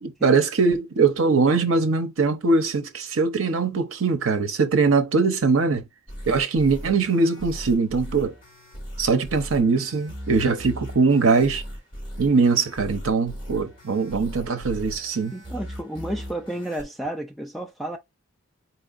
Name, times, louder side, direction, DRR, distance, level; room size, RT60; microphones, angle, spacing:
voice 1, 0.0-5.8 6.3-8.3 9.0-11.6 12.2-15.3, right 4 dB, 80° right, 0.7 m, -21 dB
sound 1, 6.1-16.8, equal, 25° left, 2.0 m, -38 dB
voice 2, 15.3-18.0, right 1 dB, ahead, 0.4 m, -32 dB
4.4 x 2.7 x 2.5 m
head